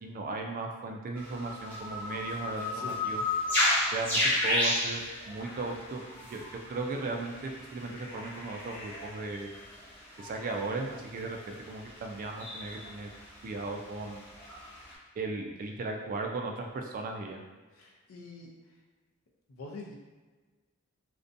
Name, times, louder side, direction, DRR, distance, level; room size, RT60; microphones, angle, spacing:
voice 1, 0.0-3.2 3.9-6.0 6.3-9.5 10.2-13.1 13.4-14.2 15.2-17.4, right 3 dB, 40° right, 2 dB, 0.3 m, -36 dB
sound 1, 1.1-14.9, left 1 dB, 10° left, 0.8 m, -33 dB
voice 2, 17.7-18.5 19.5-20.0, left 3 dB, 85° left, -1 dB, 0.5 m, -45 dB
2.5 x 2.1 x 2.5 m, 1.3 s
head